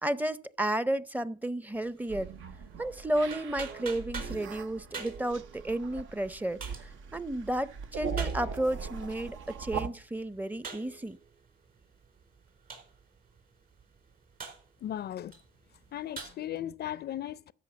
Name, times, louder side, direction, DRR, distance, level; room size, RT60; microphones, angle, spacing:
voice 1, 0.0-2.3 2.8-11.2, right 1 dB, 10° right, 0.6 m, -32 dB
sound 1, 1.7-16.3, right 5 dB, 50° right, 4.6 m, -48 dB
sound 2, 2.1-9.9, right 6 dB, 80° right, 1.0 m, -40 dB
voice 2, 14.8-15.4 15.9-17.5, left 11 dB, 55° left, 0.4 m, -37 dB
13.0 x 5.7 x 7.9 m
cardioid pair, 90°, 20 cm